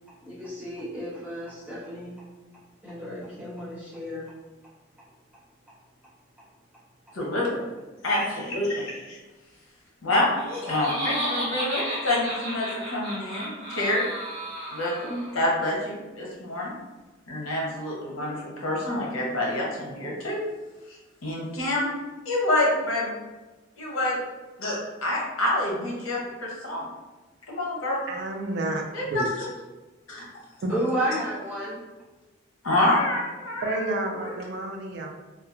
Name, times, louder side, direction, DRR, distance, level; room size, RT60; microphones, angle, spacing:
voice 1, 0.2-2.1 2.8-4.3 30.7-31.8, right 1 dB, 10° right, -9 dB, 0.9 m, -32 dB
voice 2, 7.1-7.6 8.0-9.2 10.0-10.3 10.7-14.1 14.7-16.7 17.3-20.4 21.2-21.9 22.2-23.1 23.8-24.2 24.6-26.9 27.5-28.0 28.9-29.2 30.1-30.2 32.6-34.3, left 1 dB, 85° left, -3 dB, 0.8 m, -27 dB
Laughter, 10.3-15.4, equal, 30° right, 1.1 m, -33 dB
voice 3, 28.1-28.8 29.1-29.3 30.6-30.7 33.6-35.1, right 2 dB, 55° right, 1 dB, 0.4 m, -30 dB
2.7 x 2.2 x 2.4 m, 1.2 s
head